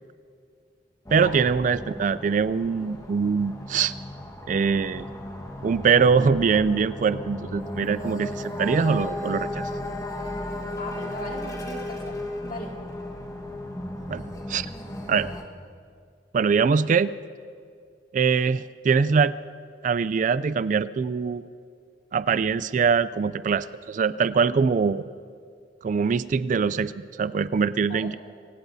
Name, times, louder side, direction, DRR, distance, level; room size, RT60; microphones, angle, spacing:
sound 1, 1.1-15.4, left 1 dB, 20° left, 1.4 m, -35 dB
voice 1, 1.1-3.9 4.5-5.1 5.6-9.7 14.1-14.2 14.5-14.7 15.1-15.3 16.3-17.1 18.1-19.3 19.8-21.4 22.1-25.0 25.8-28.2, right 5 dB, 45° right, 16 dB, 0.3 m, -23 dB
voice 2, 10.8-12.2 12.4-12.7 27.9-28.1, left 2 dB, 50° left, 0 dB, 2.3 m, -37 dB
25.0 x 17.0 x 2.7 m, 2.3 s
head